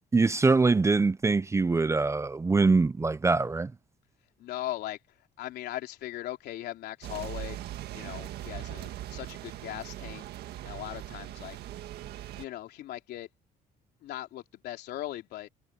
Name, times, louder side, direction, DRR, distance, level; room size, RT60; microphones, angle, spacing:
voice 1, 0.1-3.7, right 3 dB, 15° right, 0.6 m, -23 dB
voice 2, 4.4-7.6 7.9-10.2 10.6-11.6 12.3-13.3 14.0-15.5, left 14 dB, 75° left, 3.3 m, -39 dB
sound 1, 7.0-12.5, right 13 dB, 75° right, 1.6 m, -40 dB
cardioid pair, 110°, 17 cm